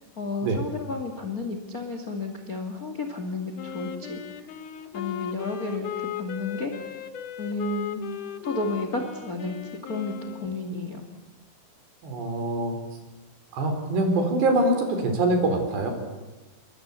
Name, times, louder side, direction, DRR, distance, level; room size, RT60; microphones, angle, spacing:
voice 1, 0.2-4.2 4.9-6.7 7.4-8.0 8.4-9.6 9.8-11.0, left 3 dB, 35° left, 5 dB, 1.4 m, -32 dB
Wind instrument woodwind instrument, 3.5-10.7, left 10 dB, 65° left, 2.1 m, -37 dB
voice 2, 12.0-12.8 13.5-15.9, right 2 dB, 65° right, 5 dB, 6.4 m, -24 dB
28.0 x 23.5 x 8.3 m, 1.1 s
omnidirectional pair, 5.3 m